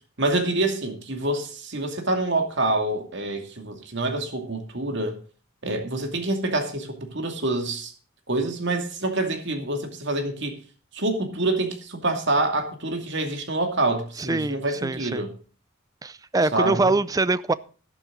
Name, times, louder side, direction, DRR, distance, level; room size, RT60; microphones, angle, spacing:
voice 1, 0.2-5.2 5.6-7.9 8.3-10.5 10.9-15.3 16.5-16.9, right 2 dB, 60° right, 2.5 m, -26 dB
voice 2, 14.2-15.2 16.0-17.5, right 3 dB, 15° right, 0.5 m, -24 dB
12.5 x 11.0 x 3.9 m
head